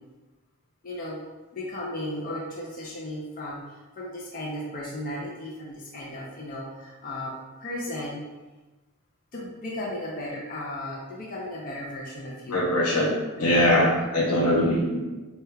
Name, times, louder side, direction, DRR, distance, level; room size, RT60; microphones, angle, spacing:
voice 1, 0.8-1.2 1.5-7.3 7.6-8.2 9.3-12.7 13.4-13.7 13.9-14.1, left 1 dB, 40° left, -4 dB, 0.5 m, -35 dB
voice 2, 12.5-15.0, left 1 dB, 85° left, -2 dB, 0.8 m, -22 dB
4.6 x 2.2 x 2.2 m, 1.2 s
head